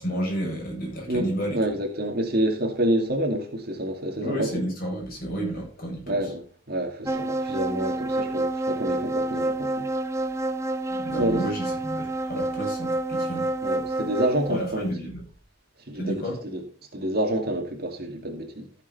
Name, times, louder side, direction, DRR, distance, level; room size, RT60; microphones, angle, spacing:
voice 1, 0.0-1.6 4.2-6.2 10.9-13.5 14.5-15.2 15.9-16.4, right 1 dB, 45° left, 7.1 m, -31 dB
voice 2, 1.1-4.6 6.1-9.9 11.2-11.4 13.6-14.9 15.9-16.6 16.9-18.7, right 1 dB, 50° right, 2.5 m, -28 dB
sound 1, 7.1-14.5, right 2 dB, 15° right, 0.8 m, -28 dB
15.5 x 7.2 x 4.2 m
head